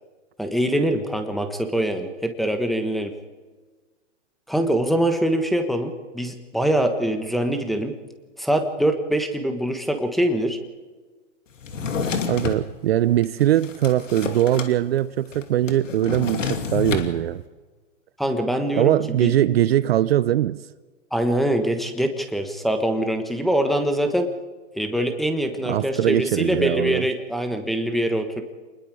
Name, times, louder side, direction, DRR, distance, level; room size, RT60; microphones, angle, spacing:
voice 1, 0.4-3.1 4.5-7.9 8.4-10.6 18.2-19.3 21.1-24.3 24.7-28.4, right 1 dB, ahead, 1.3 m, -23 dB
Drawer open or close, 11.6-12.6 13.2-14.7 15.0-15.1 15.3-17.1, left 5 dB, 85° left, 2.6 m, -28 dB
voice 2, 12.3-17.4 18.8-20.6 25.7-27.1, right 12 dB, 55° right, 0.7 m, -21 dB
27.5 x 20.5 x 4.9 m
hypercardioid pair, 145°, 37 cm